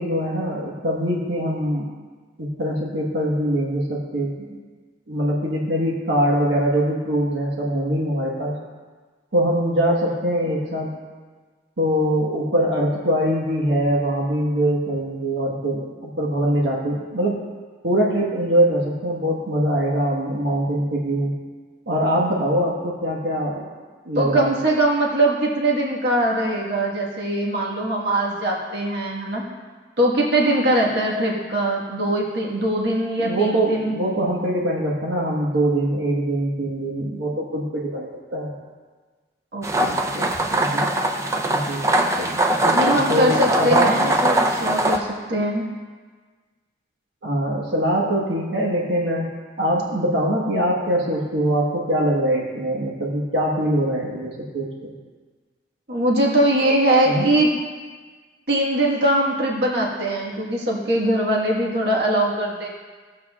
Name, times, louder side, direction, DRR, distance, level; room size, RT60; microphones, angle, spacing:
voice 1, 0.0-1.9 2.4-4.6 5.1-8.6 9.3-11.0 11.8-17.4 17.8-21.3 21.9-23.7 24.0-24.5 33.2-38.5 40.6-40.9 41.5-41.9 43.1-44.1 47.2-49.3 49.6-54.9 57.1-57.3, right 1 dB, 85° right, -3 dB, 1.4 m, -23 dB
voice 2, 24.1-29.4 30.0-34.1 39.5-40.6 42.2-45.6 55.9-57.5 58.5-62.7, right 1 dB, 65° right, -2 dB, 1.5 m, -22 dB
sound 1, 39.6-45.0, right 1 dB, 15° right, 0.5 m, -21 dB
17.0 x 7.3 x 2.4 m, 1.4 s
head